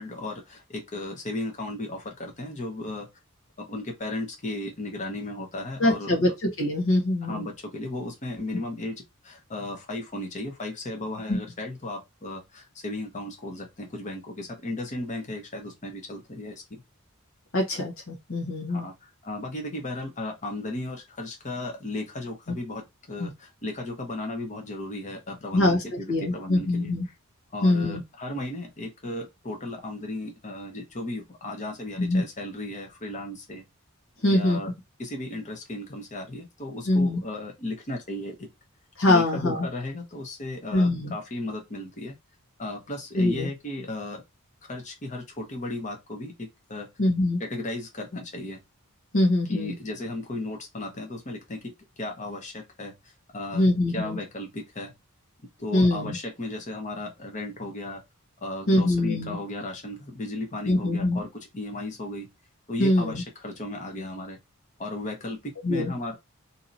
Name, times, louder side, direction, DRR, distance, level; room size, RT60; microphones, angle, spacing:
voice 1, 0.0-3.1 3.6-6.2 7.2-16.8 18.7-26.9 27.5-33.6 34.3-34.7 35.0-38.5 39.1-42.2 42.6-44.2 44.7-46.9 47.4-48.6 49.5-53.6 53.9-54.9 55.6-58.0 58.4-61.3 61.5-62.3 62.7-64.4 64.8-66.2, left 2 dB, 35° left, 1.0 m, -35 dB
voice 2, 5.8-6.3 6.6-7.4 11.3-11.4 17.5-18.9 22.5-22.6 23.2-23.3 25.5-27.1 27.6-28.0 32.0-32.2 34.2-34.6 36.9-37.2 39.0-39.7 40.7-41.1 43.1-43.5 47.0-47.4 49.1-49.8 53.5-54.2 55.7-56.2 58.7-59.4 60.7-61.2 62.8-63.2 65.6-65.9, left 1 dB, 65° left, 1.2 m, -23 dB
2.9 x 2.8 x 3.9 m
head